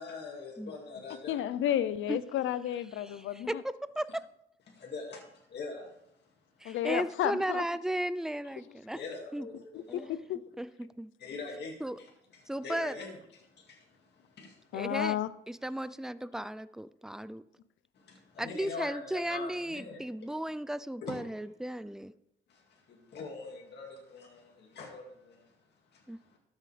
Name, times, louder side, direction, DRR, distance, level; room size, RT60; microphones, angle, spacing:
voice 1, 0.0-1.4 3.1-3.2 4.7-6.3 6.6-6.7 8.9-10.1 11.2-14.9 17.9-20.0 21.0-21.2 22.5-25.6 25.9-26.4, left 4 dB, 60° left, -1 dB, 2.1 m, -44 dB
voice 2, 1.3-3.6 6.6-7.6 10.1-10.4 14.7-15.3, left 11 dB, 80° left, 16 dB, 0.6 m, -31 dB
voice 3, 3.0-4.2 6.6-9.0 9.3-9.5 9.9-10.1 10.6-11.1 11.8-12.0 12.5-12.9 14.7-15.2 15.5-17.4 18.4-22.1 26.1-26.2, right 1 dB, 5° right, 15 dB, 0.4 m, -35 dB
13.0 x 7.3 x 3.3 m, 0.78 s
cardioid pair, 90°, 20 cm